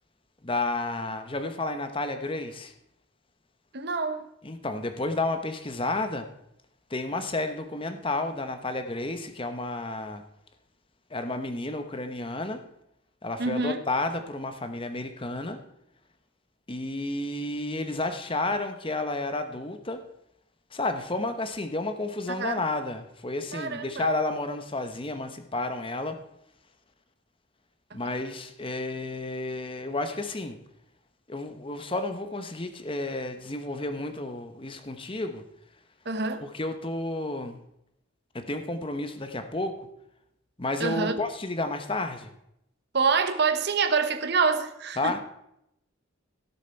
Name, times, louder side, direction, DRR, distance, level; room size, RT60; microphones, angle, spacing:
voice 1, 0.4-2.7 4.4-6.3 6.9-10.2 11.1-12.6 13.2-15.6 16.7-20.0 20.7-26.2 27.9-30.6 31.3-35.4 36.4-37.6 38.3-39.9 40.6-42.3 45.0-45.2, left 2 dB, 25° left, 0.9 m, -31 dB
voice 2, 3.7-4.2 13.4-13.8 22.3-22.6 23.5-24.1 36.0-36.4 40.8-41.2 42.9-45.2, right 4 dB, 55° right, 1.0 m, -26 dB
16.5 x 7.0 x 4.5 m
head